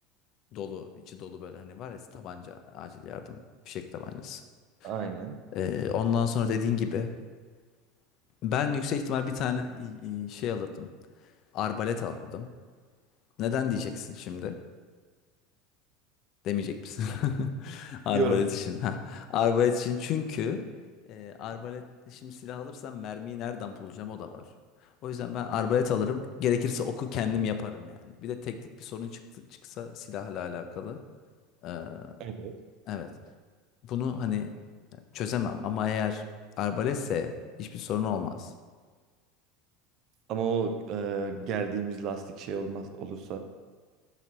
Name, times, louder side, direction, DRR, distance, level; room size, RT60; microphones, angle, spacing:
voice 1, 0.5-3.4 3.7-4.4 4.8-4.9 5.5-7.1 8.4-10.9 11.5-12.5 13.4-14.5 16.4-20.6 21.1-24.4 25.0-29.1 29.8-31.0 31.6-32.1 32.9-33.1 33.8-34.5 35.1-36.3 36.6-37.3 37.6-38.5, left 8 dB, 50° left, 8 dB, 0.5 m, -31 dB
voice 2, 4.8-5.3 18.1-18.5 32.2-32.5 40.3-43.4, right 5 dB, 50° right, 7 dB, 0.6 m, -32 dB
5.8 x 4.0 x 4.3 m, 1.5 s
hypercardioid pair, 85°, 0 cm